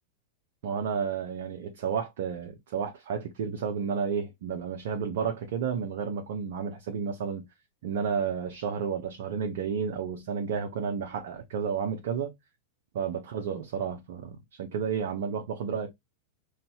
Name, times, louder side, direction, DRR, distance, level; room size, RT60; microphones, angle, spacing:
voice 1, 0.6-7.4 7.8-12.3 12.9-15.9, right 6 dB, 55° right, 0.8 m, -31 dB
5.4 x 3.2 x 2.7 m
figure-of-eight pair, 90°, 0 cm